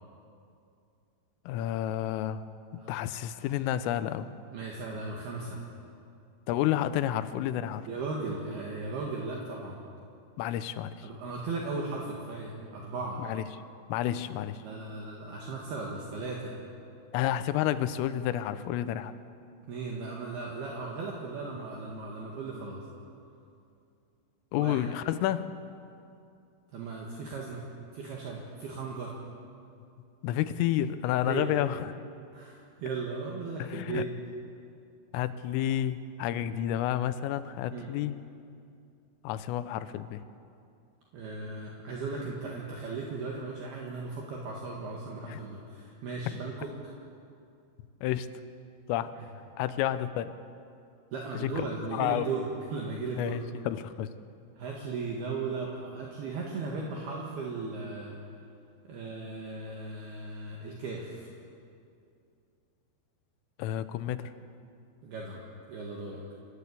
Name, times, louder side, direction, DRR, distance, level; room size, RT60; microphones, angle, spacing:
voice 1, 1.5-2.5 2.7-4.3 6.5-7.9 10.4-11.1 13.2-13.4 13.9-14.6 17.1-19.1 24.5-25.6 30.2-32.0 33.6-34.1 35.1-38.2 39.2-40.2 45.2-45.4 48.0-48.3 48.9-49.2 49.6-50.3 51.3-51.5 51.9-52.3 53.2-54.1 63.6-64.3, left 12 dB, 90° left, 12 dB, 3.4 m, -30 dB
voice 2, 4.5-5.6 7.9-9.8 11.0-13.2 14.6-16.5 19.7-22.8 24.5-24.9 26.7-27.7 27.9-29.2 31.2-31.5 32.3-34.1 37.7-37.9 41.1-46.7 49.2-49.3 51.1-53.4 54.6-58.1 58.9-61.3 65.0-65.4 65.7-66.2, right 3 dB, 60° right, -2 dB, 3.4 m, -37 dB
28.5 x 15.0 x 8.5 m, 2.5 s
omnidirectional pair, 5.8 m